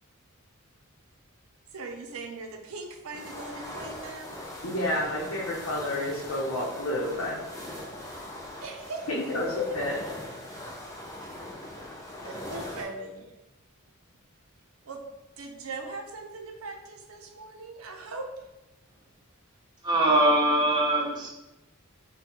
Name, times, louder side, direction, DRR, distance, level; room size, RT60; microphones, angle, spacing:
voice 1, 1.7-4.3 8.6-9.0 9.4-9.8 11.2-11.4 12.2-13.3 14.8-15.1 15.4-18.5, right 3 dB, 75° right, 3 dB, 0.6 m, -40 dB
sound 1, 3.1-12.8, left 1 dB, 15° left, 0.5 m, -41 dB
voice 2, 4.6-7.4 9.1-10.0, left 1 dB, 65° left, -5 dB, 0.8 m, -30 dB
voice 3, 19.8-21.3, right 1 dB, 20° right, -4 dB, 0.8 m, -22 dB
5.6 x 2.3 x 3.0 m, 1.0 s
head